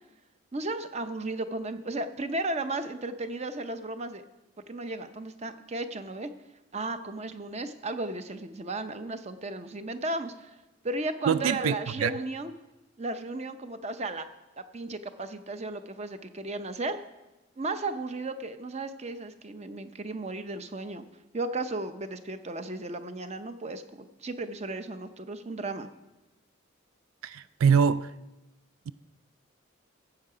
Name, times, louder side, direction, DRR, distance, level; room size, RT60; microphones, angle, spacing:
voice 1, 0.5-4.2 4.7-6.3 6.7-10.5 10.8-12.5 13.0-14.3 14.7-17.0 17.6-21.0 21.3-25.9, right 2 dB, 30° right, 0.6 m, -34 dB
voice 2, 11.3-12.1 27.2-28.1 28.9-29.0, right 6 dB, 80° right, 0.4 m, -24 dB
14.5 x 7.7 x 4.9 m
head